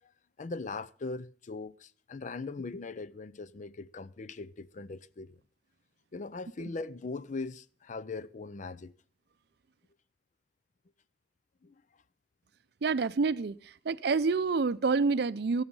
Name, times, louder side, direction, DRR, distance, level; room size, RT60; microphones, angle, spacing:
voice 1, 0.4-5.4 6.1-8.9 11.6-11.7, left 3 dB, 45° left, 0.5 m, -40 dB
voice 2, 12.8-15.6, right 4 dB, 65° right, 0.5 m, -28 dB
14.0 x 8.8 x 5.4 m
head